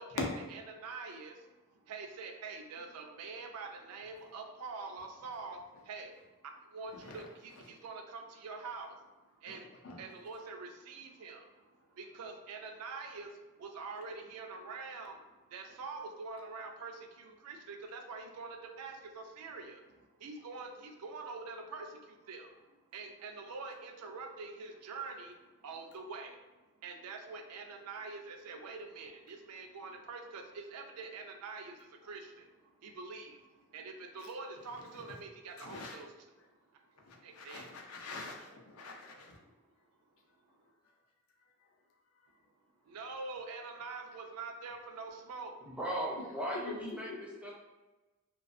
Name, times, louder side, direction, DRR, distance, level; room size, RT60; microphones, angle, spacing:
voice 1, 0.0-22.6 22.9-36.1 36.4-36.5 37.2-37.7 42.8-45.6, right 4 dB, 90° right, 3 dB, 0.4 m, -45 dB
voice 2, 6.9-7.2 9.5-10.0 34.9-35.1 35.6-36.0 37.0-39.5 46.7-46.8 47.1-47.2, left 3 dB, 70° left, 1 dB, 0.5 m, -43 dB
voice 3, 45.6-47.5, equal, 5° right, -4 dB, 0.4 m, -38 dB
2.3 x 2.3 x 2.4 m, 1.1 s
head